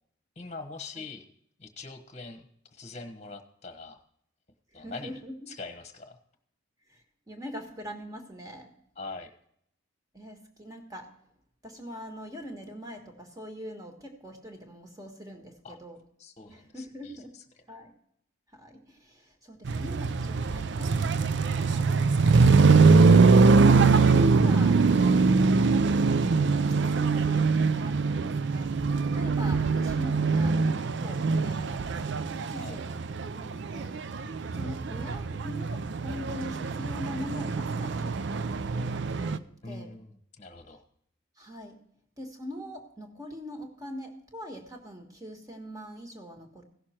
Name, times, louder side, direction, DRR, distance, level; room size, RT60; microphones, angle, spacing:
voice 1, 0.4-1.2 1.6-4.0 4.7-5.1 5.5-6.2 9.0-9.3 15.6-15.8 16.2-16.8 32.6-32.8 34.2-34.6 39.6-40.8, left 3 dB, 30° left, 8 dB, 1.1 m, -43 dB
voice 2, 4.7-5.5 6.9-8.7 10.1-11.1 11.6-16.0 16.5-17.3 17.7-17.9 18.5-22.9 23.4-25.7 26.6-33.0 33.2-39.9 41.4-41.8 42.2-46.6, equal, 15° right, 3 dB, 1.6 m, -43 dB
sound 1, 19.7-39.4, right 4 dB, 55° right, 0.4 m, -23 dB
16.5 x 6.6 x 4.3 m, 0.70 s
head